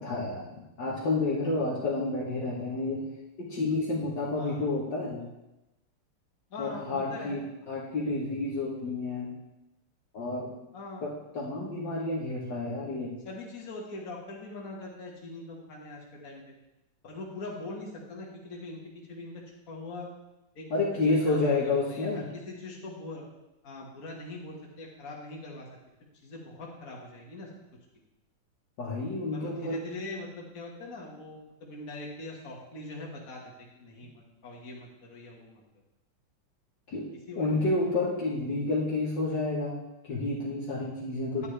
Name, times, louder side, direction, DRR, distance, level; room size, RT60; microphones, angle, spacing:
voice 1, 0.0-3.0 3.4-5.2 6.6-9.3 10.1-10.5 11.0-13.2 20.7-22.3 28.8-29.8 36.9-37.1 37.4-39.8 40.0-41.5, left 2 dB, 60° left, -5 dB, 1.9 m, -30 dB
voice 2, 6.5-7.4 10.7-11.0 13.2-16.4 17.0-18.8 19.1-20.1 20.6-20.7 20.9-23.2 23.6-25.7 26.2-27.5 29.3-35.6 37.3-37.6, left 2 dB, 40° left, -2 dB, 2.0 m, -42 dB
10.5 x 10.0 x 3.3 m, 0.96 s
omnidirectional pair, 2.4 m